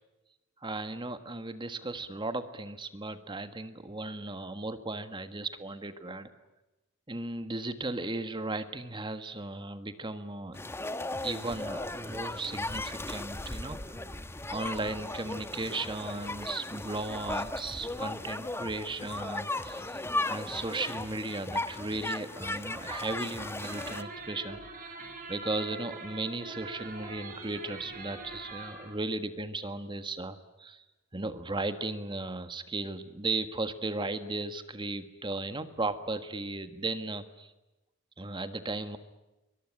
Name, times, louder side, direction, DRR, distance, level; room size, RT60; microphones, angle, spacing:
voice 1, 0.6-6.3 7.1-10.6 11.2-14.0 14.5-20.0 20.3-30.8 31.1-37.5 38.2-39.0, right 2 dB, 20° right, 10 dB, 1.5 m, -36 dB
sound 1, 10.5-24.0, left 2 dB, 10° left, 1.1 m, -36 dB
sound 2, 23.6-28.9, right 3 dB, 40° right, 7.0 m, -43 dB
23.5 x 21.5 x 9.9 m, 1.0 s
head